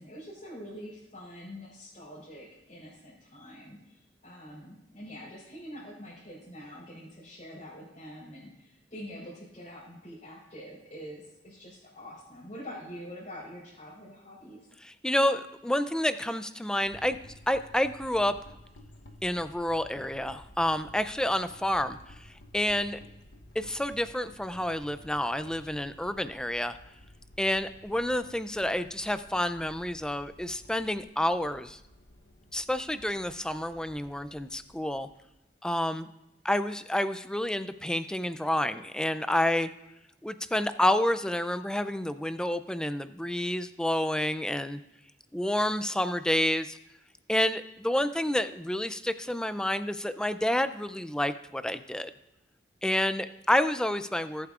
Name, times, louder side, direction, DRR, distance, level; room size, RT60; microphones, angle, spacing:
voice 1, 0.0-14.6, equal, 40° left, -9 dB, 3.8 m, -45 dB
voice 2, 14.8-17.2 17.5-18.4 19.2-22.0 22.5-23.0 23.6-26.8 27.4-31.8 32.5-35.1 35.6-36.1 36.4-39.7 40.2-44.8 45.3-46.8 47.3-52.1 52.8-54.5, left 1 dB, 5° left, 12 dB, 0.3 m, -29 dB
sound 1, 16.8-35.4, left 1 dB, 85° left, 1.0 m, -53 dB
19.0 x 8.1 x 2.4 m, 0.90 s
head